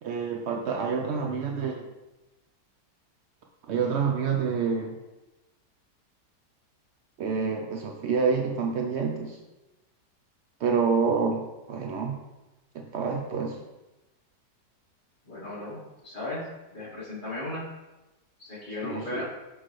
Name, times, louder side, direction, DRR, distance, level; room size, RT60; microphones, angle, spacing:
voice 1, 0.0-1.9 3.7-5.0 7.2-9.4 10.6-12.2 12.7-13.6 18.7-19.2, right 5 dB, 80° right, 2 dB, 0.6 m, -28 dB
voice 2, 15.3-15.8 16.0-16.4 16.7-17.6 18.4-19.2, left 2 dB, 40° left, -8 dB, 2.6 m, -35 dB
6.4 x 5.9 x 3.2 m, 1.0 s
omnidirectional pair, 1.8 m